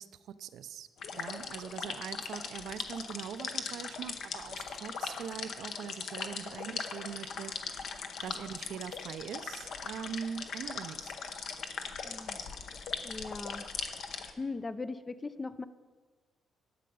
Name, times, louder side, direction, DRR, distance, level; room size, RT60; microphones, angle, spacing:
voice 1, 0.0-7.9 8.2-11.2, right 8 dB, 75° right, 13 dB, 0.5 m, -42 dB
sound 1, 1.0-14.3, left 5 dB, 65° left, 0.9 m, -40 dB
voice 2, 12.0-12.4 13.0-13.7 14.4-15.6, left 3 dB, 25° left, 13 dB, 0.4 m, -39 dB
12.0 x 6.7 x 5.4 m, 1.5 s
cardioid pair, 90°, 0 cm